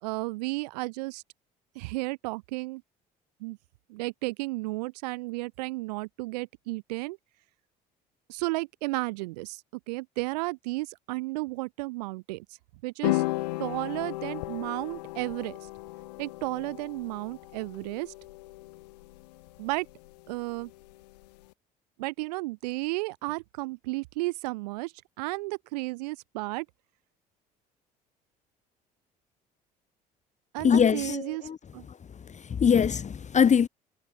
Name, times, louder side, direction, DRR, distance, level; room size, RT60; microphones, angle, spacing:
voice 1, 0.0-1.2 1.7-2.8 3.4-3.6 3.9-7.2 8.3-9.6 9.9-12.4 12.8-13.2 13.6-15.5 16.2-18.1 19.6-19.9 20.3-20.7 22.0-24.9 25.2-26.6 30.5-31.4 31.7-31.8, right 23 dB, 80° right, 4.9 m, -33 dB
sound 1, 13.0-21.5, left 20 dB, 80° left, 7.6 m, -36 dB
voice 2, 30.6-31.6 31.9-32.0 32.3-33.7, left 7 dB, 35° left, 1.4 m, -23 dB
hypercardioid pair, 60°, 21 cm